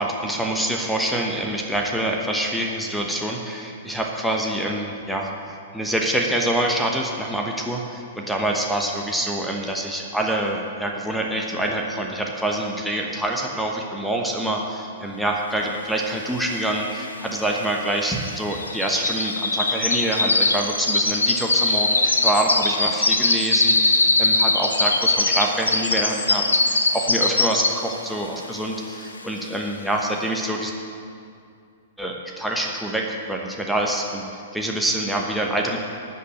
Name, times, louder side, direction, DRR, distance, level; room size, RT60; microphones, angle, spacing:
voice 1, 0.0-30.7 32.0-35.8, right 1 dB, ahead, 0 dB, 1.0 m, -26 dB
sound 1, 16.3-16.4 16.6-28.0 28.4-28.7 29.2-29.3, left 2 dB, 80° left, 0.8 m, -22 dB
12.5 x 5.5 x 7.7 m, 2.4 s
figure-of-eight pair, 105°, 0 cm